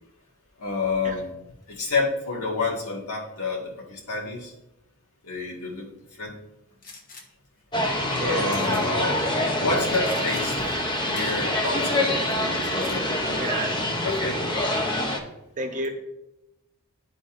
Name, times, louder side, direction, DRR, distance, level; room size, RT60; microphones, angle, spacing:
voice 1, 0.6-1.3 1.7-4.5 5.3-5.9 6.2-6.3 8.3-9.2 9.6-10.5 11.0-13.4 14.0-14.4, left 3 dB, 80° left, -3 dB, 1.7 m, -29 dB
Gunshot gunfire, 6.8-7.2 8.1-8.2 8.5-9.2 9.9-10.4 10.7-10.9 11.1-11.8 12.6-13.0, left 3 dB, 40° left, 1.0 m, -43 dB
sound 1, 7.7-15.2, left 1 dB, 20° left, 0.7 m, -25 dB
voice 2, 8.2-8.6 13.4-13.9 14.5-14.8 15.6-15.9, right 1 dB, 35° right, 4 dB, 0.8 m, -31 dB
12.0 x 4.0 x 2.5 m, 0.89 s
head